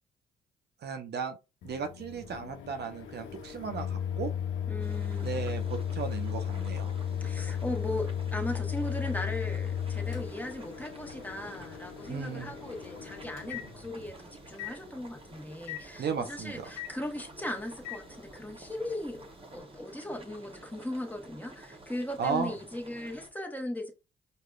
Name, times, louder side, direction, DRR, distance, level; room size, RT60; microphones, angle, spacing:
voice 1, 0.8-1.4 1.6-4.3 5.2-6.9 12.1-12.5 16.0-16.7 22.2-22.5, right 6 dB, 55° right, 0.6 m, -35 dB
Microwave oven, 1.6-14.2 14.6-14.7 15.7-15.8 16.8-16.9 17.8-18.0, left 9 dB, 75° left, 0.6 m, -35 dB
voice 2, 4.7-5.4 7.2-19.3 19.5-23.9, left 1 dB, 10° left, 1.0 m, -38 dB
sound 1, 4.8-23.3, right 2 dB, 25° right, 1.1 m, -51 dB
4.8 x 2.2 x 2.4 m
supercardioid pair, 50°, 20 cm